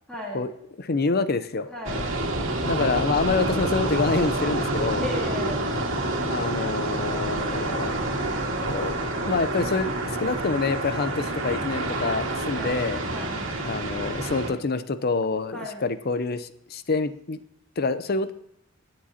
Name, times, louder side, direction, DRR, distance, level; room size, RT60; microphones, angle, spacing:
voice 1, 0.1-0.4 1.7-2.1 5.0-5.6 12.5-12.8 13.1-13.4 15.5-15.8, left 1 dB, 5° left, -4 dB, 1.9 m, -34 dB
voice 2, 0.8-1.7 2.6-5.0 6.3-7.9 8.7-13.0 13.6-17.4 17.8-18.3, left 3 dB, 50° left, 12 dB, 0.6 m, -27 dB
sound 1, 1.8-14.5, right 2 dB, 75° right, 2.1 m, -28 dB
21.0 x 7.6 x 2.8 m, 0.78 s
head